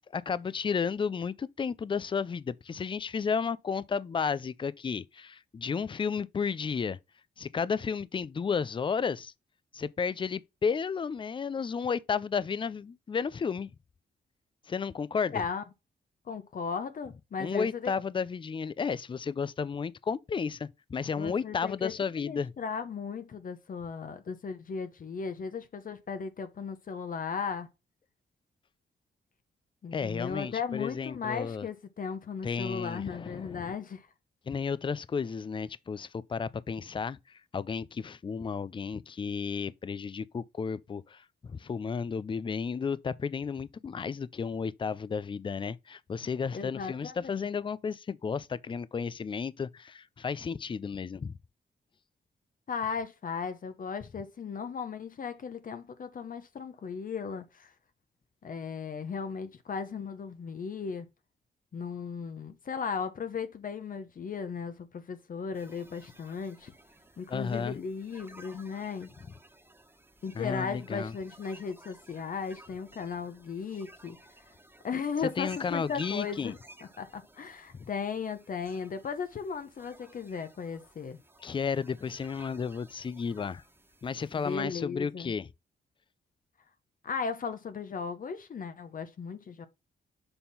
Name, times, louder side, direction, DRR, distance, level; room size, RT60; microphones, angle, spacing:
voice 1, 0.1-7.0 7.4-9.3 9.7-13.7 14.7-15.4 17.4-22.5 29.9-31.7 32.4-33.8 34.5-51.3 67.3-67.8 70.3-71.1 75.4-76.5 81.4-83.6 84.0-85.5, left 6 dB, 30° left, 0.4 m, -33 dB
voice 2, 15.3-15.6 16.3-17.9 21.2-27.7 29.8-34.1 46.5-47.5 52.7-57.7 58.4-61.1 61.7-66.7 67.2-69.1 70.2-74.2 74.8-76.6 77.0-81.2 84.3-85.3 87.0-89.7, left 6 dB, 50° left, 0.9 m, -36 dB
sound 1, 65.5-84.6, right 1 dB, 15° right, 1.5 m, -56 dB
7.0 x 3.6 x 5.6 m
cardioid pair, 90°, 18 cm